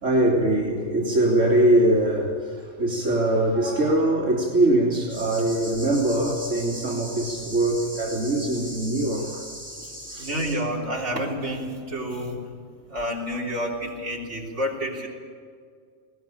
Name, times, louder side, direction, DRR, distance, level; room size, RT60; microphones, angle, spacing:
voice 1, 0.0-9.4 10.1-10.3, right 1 dB, 90° right, -2 dB, 3.3 m, -22 dB
sound 1, 5.1-10.5, equal, 5° right, 7.2 m, -39 dB
voice 2, 10.2-12.5 12.9-15.1, equal, 65° right, -2 dB, 4.0 m, -29 dB
21.5 x 18.5 x 9.0 m, 2.2 s
omnidirectional pair, 1.3 m